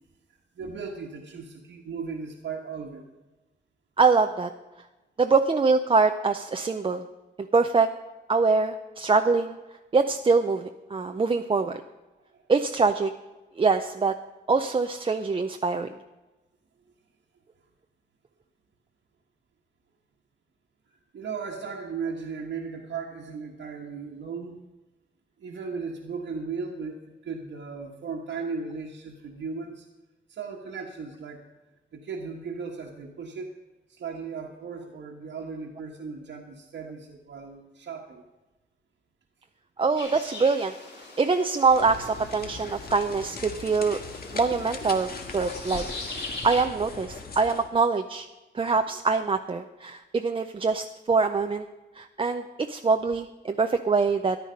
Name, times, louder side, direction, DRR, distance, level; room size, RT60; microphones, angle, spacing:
voice 1, 0.5-3.0 12.3-12.4 20.9-24.6 25.4-29.9 30.3-31.5 31.9-33.6 33.9-38.2, right 5 dB, 80° right, -1 dB, 1.5 m, -36 dB
voice 2, 4.0-4.5 5.2-7.0 7.5-7.9 8.3-9.6 9.9-11.8 12.5-13.1 13.6-14.2 14.5-15.9 39.8-40.7 41.2-44.0 44.3-45.8 46.4-48.3 48.5-51.7 52.0-52.4 52.7-54.4, right 4 dB, 30° right, 6 dB, 0.6 m, -24 dB
sound 1, 40.0-46.7, left 2 dB, 75° left, 4.3 m, -41 dB
sound 2, 41.7-47.7, left 4 dB, 55° left, 1.6 m, -39 dB
14.0 x 11.0 x 5.2 m, 1.1 s
wide cardioid pair, 140°, 19 cm